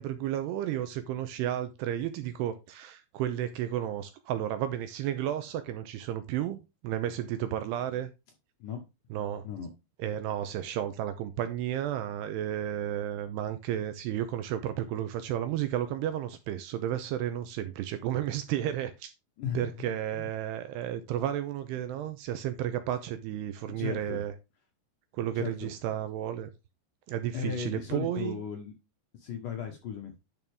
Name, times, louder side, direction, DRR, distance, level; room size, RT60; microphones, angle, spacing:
voice 1, 0.0-8.1 9.1-9.4 10.0-19.1 19.5-24.3 25.1-26.5 27.1-28.4, right 11 dB, 80° right, 2.6 m, -32 dB
voice 2, 19.4-19.9 20.1-20.3 23.7-24.2 25.4-25.7 27.3-28.7 29.1-30.1, left 7 dB, 65° left, 2.2 m, -36 dB
11.0 x 5.4 x 3.5 m
omnidirectional pair, 5.2 m